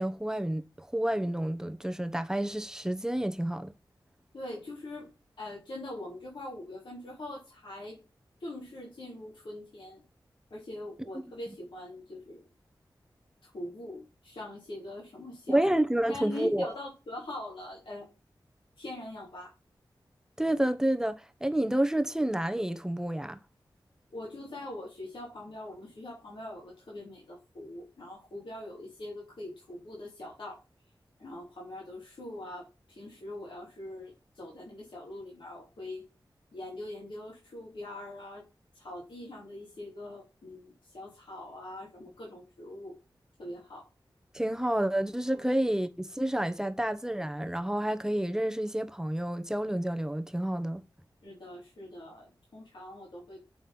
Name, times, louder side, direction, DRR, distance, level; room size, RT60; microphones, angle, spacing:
voice 1, 0.0-3.7 15.5-16.7 20.4-23.4 44.3-50.8, right 1 dB, 5° right, 1.0 m, -29 dB
voice 2, 4.3-5.1 5.4-8.0 8.4-10.0 10.5-12.5 13.4-15.7 16.1-18.1 18.8-19.5 24.1-30.6 31.2-36.0 36.5-38.5 38.7-42.9 43.4-43.9 45.3-45.5 51.2-53.4, left 1 dB, 80° left, 3.1 m, -42 dB
7.6 x 4.2 x 5.5 m
cardioid pair, 55°, 8 cm